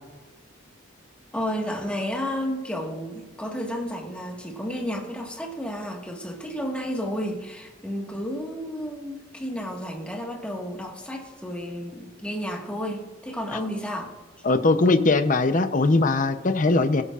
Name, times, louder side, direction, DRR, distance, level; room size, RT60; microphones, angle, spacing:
voice 1, 1.3-14.1, equal, 5° left, 0 dB, 1.6 m, -32 dB
voice 2, 14.4-17.0, left 3 dB, 40° left, 9 dB, 0.7 m, -20 dB
20.5 x 11.0 x 2.5 m, 1.2 s
head